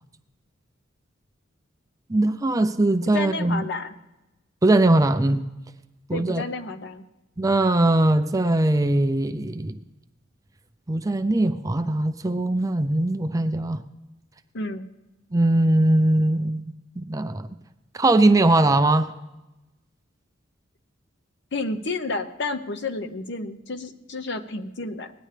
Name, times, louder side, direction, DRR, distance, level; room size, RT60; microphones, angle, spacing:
voice 1, 2.1-3.7 4.6-5.5 6.1-6.4 7.4-9.8 10.9-13.8 15.3-17.5 17.9-19.1, right 2 dB, 15° right, 9 dB, 0.4 m, -21 dB
voice 2, 3.1-4.0 6.1-7.0 14.5-14.9 21.5-25.1, left 3 dB, 60° left, 9 dB, 0.8 m, -31 dB
18.0 x 10.0 x 3.3 m, 1.0 s
head